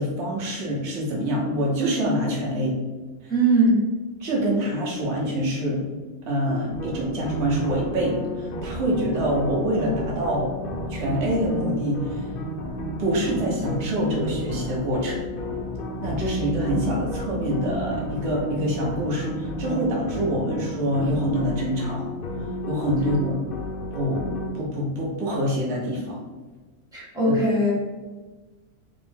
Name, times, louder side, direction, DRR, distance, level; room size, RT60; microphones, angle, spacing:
voice 1, 0.0-2.8 3.2-3.3 4.2-5.8 6.3-10.5 10.9-12.3 13.0-15.2 16.0-22.1 22.7-23.4 23.9-26.2 27.3-27.4, equal, 55° right, -4 dB, 1.3 m, -25 dB
voice 2, 3.3-3.8 26.9-27.7, right 2 dB, 5° right, -7 dB, 1.3 m, -20 dB
sound 1, 6.7-24.5, equal, 65° left, 0.5 m, -32 dB
3.3 x 2.8 x 4.4 m, 1.3 s
omnidirectional pair, 1.5 m